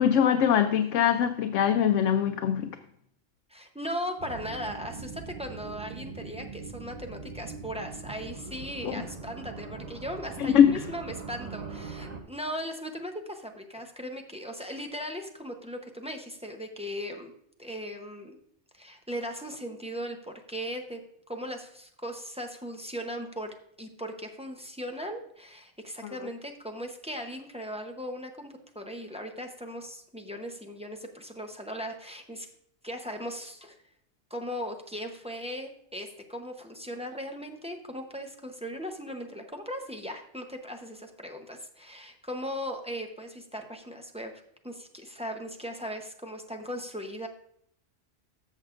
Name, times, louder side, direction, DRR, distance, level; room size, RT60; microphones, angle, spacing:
voice 1, 0.0-2.8 8.8-9.0 10.4-10.8 26.0-26.2, left 9 dB, 80° left, 0.9 m, -22 dB
voice 2, 3.5-17.3 17.6-18.4 18.7-21.0 21.3-23.5 23.8-32.5 32.8-33.8 34.3-44.3 44.6-47.3, equal, 5° right, 0.7 m, -38 dB
sound 1, 4.2-12.2, right 4 dB, 35° right, 0.9 m, -41 dB
14.0 x 6.4 x 2.5 m
omnidirectional pair, 1.3 m